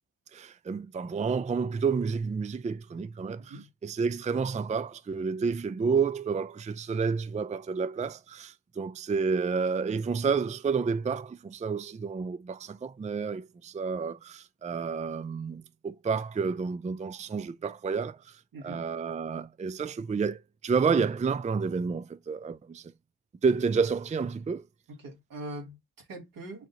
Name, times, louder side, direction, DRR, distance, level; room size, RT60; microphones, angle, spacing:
voice 1, 0.3-22.9 23.4-24.7, right 5 dB, 20° right, 0.4 m, -30 dB
voice 2, 3.4-3.7 18.5-18.8 24.9-26.7, right 1 dB, 80° right, 1.7 m, -42 dB
4.8 x 2.7 x 3.8 m
cardioid pair, 45°, 33 cm